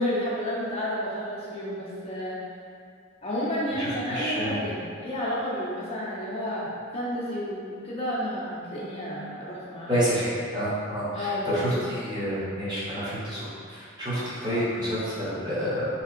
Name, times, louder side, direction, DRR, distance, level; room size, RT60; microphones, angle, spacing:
voice 1, 0.0-2.4 3.2-10.1 11.1-11.8, left 1 dB, 30° left, -6 dB, 0.7 m, -31 dB
voice 2, 3.8-4.6 9.9-15.9, equal, 20° right, -10 dB, 0.9 m, -29 dB
3.9 x 2.8 x 2.6 m, 2.4 s
head